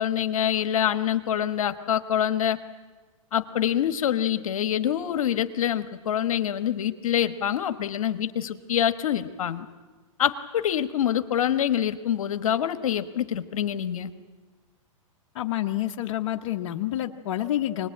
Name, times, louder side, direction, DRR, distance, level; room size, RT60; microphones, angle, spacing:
voice 1, 0.0-2.6 3.3-9.7 10.2-14.1, left 10 dB, 75° left, 9 dB, 1.3 m, -25 dB
voice 2, 15.3-17.9, left 13 dB, 55° left, 3 dB, 1.1 m, -28 dB
24.5 x 20.0 x 8.6 m, 1.3 s
hypercardioid pair, 135°, 18 cm